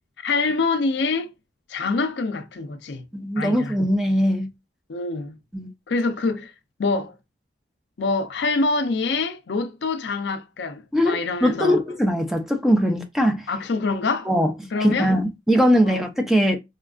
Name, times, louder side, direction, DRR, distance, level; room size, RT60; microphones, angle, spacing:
voice 1, 0.2-1.3 1.7-3.0 3.4-3.8 4.9-5.3 5.9-6.5 6.8-7.1 8.0-11.8 13.5-14.3 14.7-15.1 15.8-16.0, left 3 dB, 70° left, 0.5 m, -25 dB
voice 2, 3.1-4.5 5.5-5.7 10.9-13.5 14.3-14.5 14.8-16.6, equal, ahead, 0.6 m, -21 dB
4.3 x 2.3 x 2.3 m
head